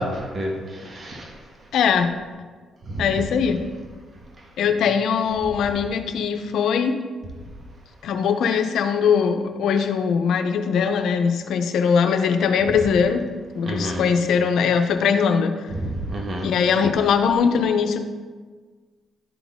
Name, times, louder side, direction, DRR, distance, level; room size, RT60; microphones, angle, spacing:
voice 1, 0.0-1.3 2.9-3.1 13.6-14.0 15.8-16.5, right 1 dB, 40° right, 0 dB, 1.5 m, -29 dB
voice 2, 1.7-2.1 3.0-3.6 4.6-7.0 8.0-13.2 13.5-15.6 16.4-18.0, left 6 dB, 75° left, 7 dB, 0.6 m, -21 dB
11.5 x 4.0 x 3.6 m, 1.5 s
cardioid pair, 90°, 0 cm